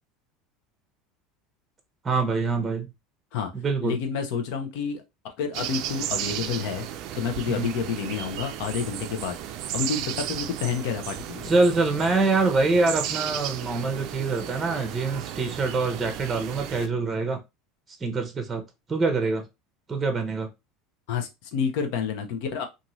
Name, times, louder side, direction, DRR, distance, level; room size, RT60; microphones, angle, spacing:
voice 1, 2.0-2.9 3.5-4.0 7.5-7.7 11.4-17.4 18.0-18.6 18.9-19.4 19.9-20.5, right 3 dB, 20° right, 0.7 m, -25 dB
voice 2, 3.8-6.9 7.1-9.4 9.7-11.5 21.1-22.7, left 6 dB, 70° left, 0.7 m, -29 dB
sound 1, 5.5-16.9, right 11 dB, 60° right, 0.3 m, -34 dB
2.6 x 2.5 x 3.0 m
supercardioid pair, 115°, 0 cm